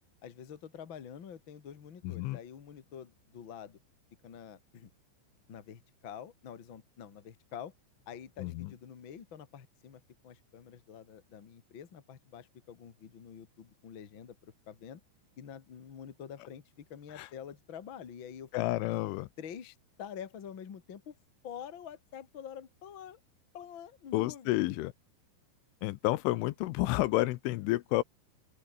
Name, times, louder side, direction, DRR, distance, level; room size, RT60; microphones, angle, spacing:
voice 1, 0.2-3.8 4.2-4.9 5.5-7.7 8.0-15.0 15.4-18.6 19.4-21.1 21.4-23.2 23.5-24.7, left 8 dB, 55° left, 1.3 m, -47 dB
voice 2, 2.0-2.4 8.4-8.7 17.2-17.3 18.5-19.3 24.1-24.9 25.8-28.0, left 18 dB, 80° left, 3.2 m, -30 dB
open air
omnidirectional pair, 5.8 m